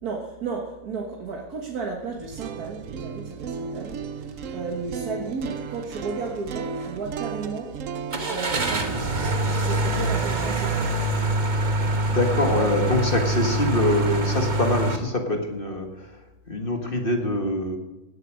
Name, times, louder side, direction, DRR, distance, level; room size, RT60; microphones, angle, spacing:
voice 1, 0.0-7.7 8.3-9.1 9.5-10.9 12.5-12.9, right 4 dB, 85° right, 0 dB, 2.0 m, -33 dB
sound 1, 2.1-12.2, right 5 dB, 65° right, 1.1 m, -36 dB
Car / Engine starting, 8.1-15.0, right 2 dB, 35° right, 1.3 m, -25 dB
voice 2, 12.1-16.1 16.5-17.8, left 1 dB, 35° left, 3 dB, 1.7 m, -24 dB
17.5 x 8.1 x 6.3 m, 1.0 s
omnidirectional pair, 1.6 m